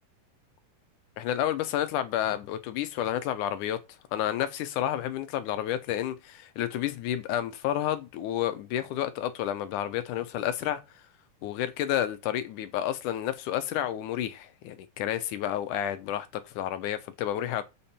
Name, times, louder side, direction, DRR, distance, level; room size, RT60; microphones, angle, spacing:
voice 1, 1.2-3.8 4.1-11.0 11.4-17.6, left 11 dB, 75° left, 2.3 m, -30 dB
7.0 x 6.6 x 4.3 m
omnidirectional pair, 3.8 m